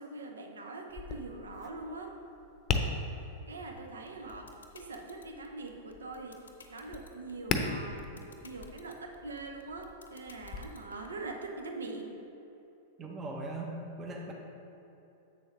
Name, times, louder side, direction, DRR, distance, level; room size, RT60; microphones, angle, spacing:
voice 1, 0.0-2.1 3.5-8.1 8.4-12.1, right 3 dB, 85° right, 3 dB, 0.7 m, -43 dB
Tap, 0.9-10.6, left 4 dB, 35° left, 0.6 m, -39 dB
sound 1, 4.1-11.1, left 5 dB, 85° left, 0.6 m, -54 dB
voice 2, 13.0-13.7 14.0-14.3, right 2 dB, 25° right, 0 dB, 0.9 m, -39 dB
7.6 x 6.3 x 3.1 m, 2.9 s
hypercardioid pair, 105°, 0 cm